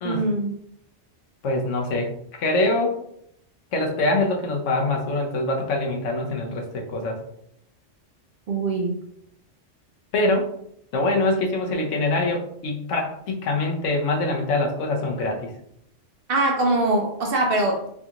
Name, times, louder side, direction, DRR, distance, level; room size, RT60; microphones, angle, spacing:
voice 1, 0.0-0.6 8.5-9.0 16.3-17.9, right 2 dB, 60° right, 2 dB, 0.6 m, -23 dB
voice 2, 1.4-3.0 3.7-7.2 10.1-10.5 10.9-15.5, left 2 dB, 80° left, 2 dB, 1.0 m, -24 dB
3.4 x 2.4 x 2.8 m, 0.72 s
omnidirectional pair, 1.3 m